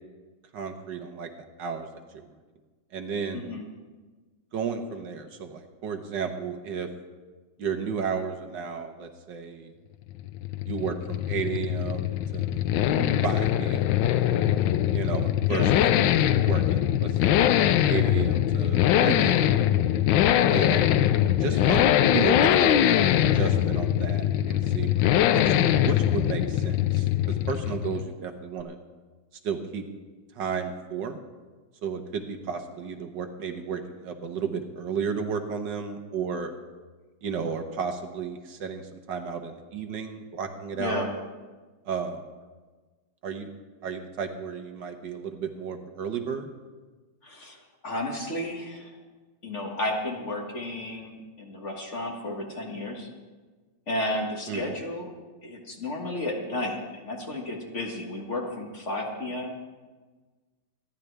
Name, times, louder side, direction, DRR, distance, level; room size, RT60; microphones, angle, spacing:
voice 1, 0.5-1.3 1.6-2.2 2.9-3.5 4.5-6.9 7.6-9.7 10.7-12.8 13.2-13.8 14.9-15.8 16.4-17.5 17.9-19.5 20.5-20.9 21.4-23.0 23.3-25.5 25.8-28.8 29.4-29.8 30.3-31.2 31.8-36.5 37.2-41.0 41.8-42.3 43.2-43.5 43.8-46.5 54.5-54.7, right 6 dB, 70° right, 5 dB, 1.7 m, -33 dB
sound 1, 10.1-28.1, left 11 dB, 85° left, 1.3 m, -22 dB
voice 2, 40.8-41.1 47.2-47.6 47.8-48.9 49.4-53.1 53.9-55.1 55.4-59.6, left 1 dB, 40° left, 0 dB, 2.1 m, -32 dB
26.5 x 10.5 x 3.4 m, 1.3 s
omnidirectional pair, 2.0 m